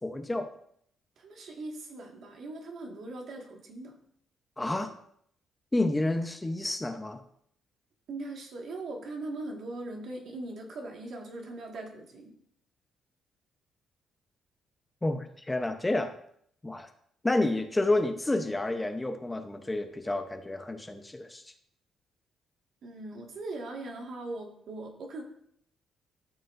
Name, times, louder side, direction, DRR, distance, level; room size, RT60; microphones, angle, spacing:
voice 1, 0.0-0.5 4.6-4.9 5.7-7.2 15.0-16.1 16.6-16.9 17.2-21.4, left 2 dB, 15° left, 7 dB, 0.8 m, -29 dB
voice 2, 1.2-4.0 8.1-12.3 22.8-25.2, right 2 dB, 65° right, 1 dB, 1.8 m, -40 dB
12.5 x 6.6 x 2.6 m, 0.68 s
cardioid pair, 90°, 0 cm